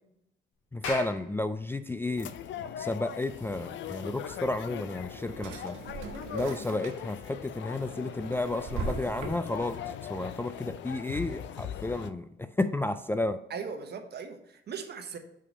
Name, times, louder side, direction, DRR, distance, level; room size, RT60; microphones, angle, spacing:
Clapping, 0.6-5.5, left 3 dB, 85° left, 1.9 m, -43 dB
voice 1, 0.7-2.3 2.8-5.8 6.3-13.4, left 2 dB, 10° left, 0.3 m, -32 dB
sound 1, 2.2-12.1, left 9 dB, 70° left, 0.6 m, -40 dB
Drawer open or close, 4.7-7.3 7.7-9.8, right 4 dB, 85° right, 1.3 m, -40 dB
voice 2, 13.5-15.2, right 6 dB, 55° right, 1.1 m, -39 dB
5.8 x 4.8 x 5.3 m
cardioid pair, 90°, 20 cm